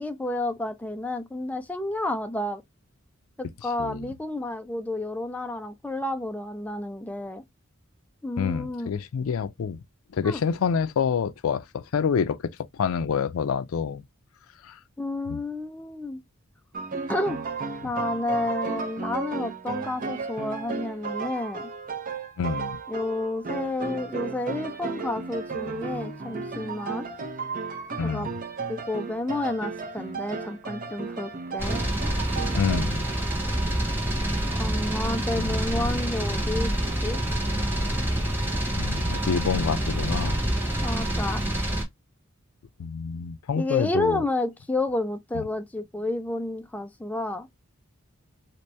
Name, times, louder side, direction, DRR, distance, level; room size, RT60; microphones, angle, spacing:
voice 1, 0.0-2.6 3.4-7.4 8.2-8.9 10.2-10.4 15.0-16.2 17.1-17.4 17.8-21.7 22.9-27.1 28.0-28.3 28.7-31.8 34.5-36.7 37.0-37.2 40.8-41.4 43.5-47.5, left 2 dB, 10° left, 0.4 m, -30 dB
voice 2, 3.8-4.1 8.4-9.8 10.1-14.0 14.6-14.8 15.3-15.4 22.4-22.8 28.0-28.3 32.5-33.0 35.4-35.6 38.8-40.4 42.8-44.2 45.3-45.4, left 6 dB, 85° left, 0.4 m, -27 dB
sound 1, 16.7-32.8, right 4 dB, 40° right, 0.7 m, -34 dB
sound 2, 31.6-41.8, right 1 dB, 10° right, 1.4 m, -27 dB
3.0 x 2.9 x 3.3 m
head